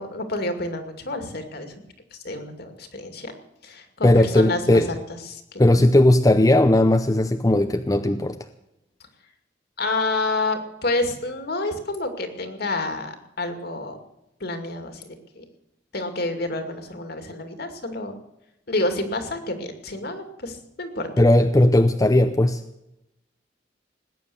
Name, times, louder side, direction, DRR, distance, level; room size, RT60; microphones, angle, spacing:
voice 1, 0.0-1.7 2.1-3.3 3.6-5.0 5.3-5.6 9.8-14.0 14.4-15.4 15.9-18.2 18.7-21.1, left 2 dB, 55° left, 6 dB, 2.4 m, -29 dB
voice 2, 4.0-4.9 5.6-8.4 21.2-22.6, left 1 dB, 20° left, 7 dB, 0.7 m, -17 dB
19.5 x 9.5 x 7.0 m, 0.87 s
head